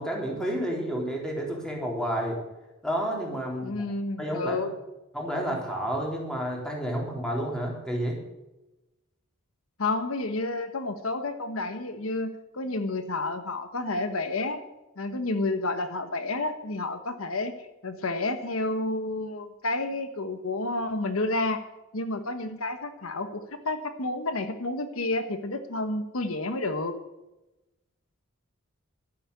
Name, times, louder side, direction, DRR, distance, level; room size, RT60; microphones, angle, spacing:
voice 1, 0.0-2.4 2.8-3.7 4.2-4.6 5.1-8.2, equal, 5° left, -1 dB, 3.8 m, -30 dB
voice 2, 3.6-4.7 9.8-14.6 15.0-21.6 21.9-27.0, left 2 dB, 80° left, 8 dB, 1.2 m, -30 dB
12.5 x 10.0 x 8.3 m, 0.99 s
head